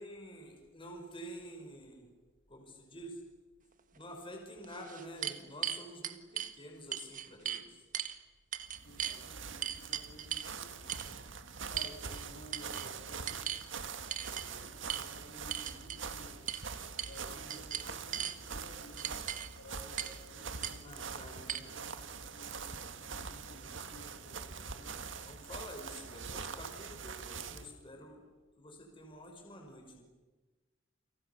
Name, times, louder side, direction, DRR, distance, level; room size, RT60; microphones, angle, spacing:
voice 1, 0.0-2.1 2.5-3.2 3.9-7.8 14.5-14.8 17.2-17.4 20.8-21.7 23.5-23.8 25.2-28.2 28.6-30.0, equal, 25° left, 3 dB, 5.7 m, -49 dB
sound 1, 4.0-4.1 4.6-6.5 6.9-7.6 7.9-8.2 8.5-9.2 9.6-10.5 10.9-11.1 11.8-12.2 12.5-12.9 13.3-13.7 14.1-14.5 14.9-15.0 15.5-16.0 16.5-16.6 17.0-17.2 17.5-18.4 19.0-19.5 20.0-20.2 20.6-20.7 21.5-21.6, right 9 dB, 45° right, 1.7 m, -37 dB
sound 2, 8.6-27.7, right 5 dB, 75° right, 1.9 m, -44 dB
voice 2, 8.8-11.0 11.7-13.5 13.8-16.5 17.0-19.2 19.6-25.0, equal, 70° left, 0 dB, 6.1 m, -55 dB
29.5 x 27.5 x 7.1 m, 1.2 s
head